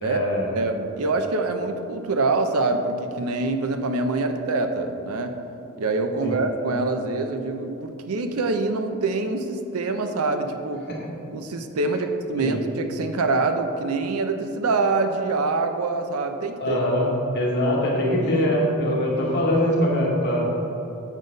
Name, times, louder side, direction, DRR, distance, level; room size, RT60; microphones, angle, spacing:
voice 1, 0.0-0.6 6.2-6.4 10.9-11.0 12.4-12.6 16.6-17.1 17.3-20.5, left 1 dB, 50° left, -3 dB, 1.4 m, -23 dB
voice 2, 0.6-5.4 5.8-10.8 11.3-16.8 18.1-18.5, right 3 dB, 75° right, 7 dB, 0.6 m, -25 dB
7.3 x 3.9 x 5.1 m, 3.0 s
head